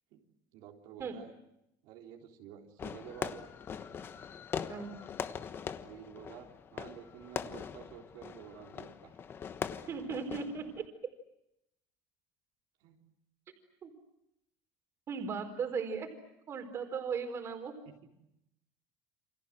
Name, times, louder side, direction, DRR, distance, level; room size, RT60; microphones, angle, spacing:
voice 1, 0.1-1.3 1.8-3.6 5.8-9.2 12.8-13.1 17.9-18.1, right 9 dB, 70° right, 1 dB, 3.9 m, -51 dB
Fireworks, 2.8-10.9, left 7 dB, 30° left, 1.2 m, -42 dB
voice 2, 9.9-10.9 13.8-13.9 15.1-16.1 16.5-17.8, right 5 dB, 30° right, 6 dB, 4.5 m, -37 dB
29.0 x 26.5 x 7.8 m, 0.85 s
cardioid pair, 160°, 8 cm